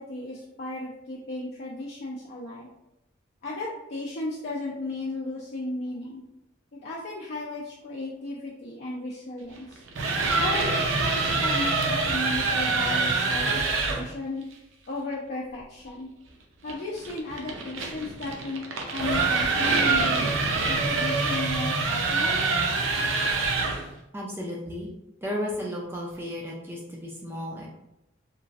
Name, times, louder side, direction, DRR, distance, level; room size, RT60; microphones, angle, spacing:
voice 1, 0.0-2.7 3.4-6.2 6.7-9.8 10.4-14.4 14.9-16.1 16.6-18.6 18.9-20.2 20.7-22.4, left 2 dB, 50° left, -5 dB, 0.5 m, -34 dB
sound 1, 9.8-14.1 16.7-23.9, right 3 dB, 70° right, 0.5 m, -25 dB
voice 2, 24.1-24.9 25.2-27.7, left 1 dB, 10° right, -3 dB, 0.3 m, -34 dB
3.0 x 2.4 x 2.4 m, 0.91 s
head